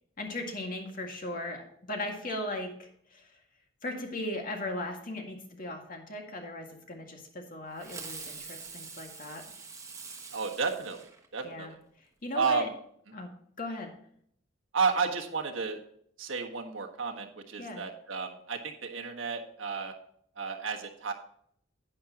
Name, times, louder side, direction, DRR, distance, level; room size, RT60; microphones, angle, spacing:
voice 1, 0.2-3.3 3.8-9.5 11.4-12.7 13.1-13.3 13.6-13.9 17.6-17.8, left 1 dB, 45° left, 2 dB, 1.9 m, -38 dB
Fireworks, 7.8-11.7, right 5 dB, 15° right, 1.1 m, -45 dB
voice 2, 10.3-11.8 12.3-12.7 14.7-15.8 16.2-19.9 20.4-21.1, right 5 dB, 85° right, 2 dB, 1.5 m, -32 dB
11.0 x 9.4 x 2.9 m, 0.65 s
head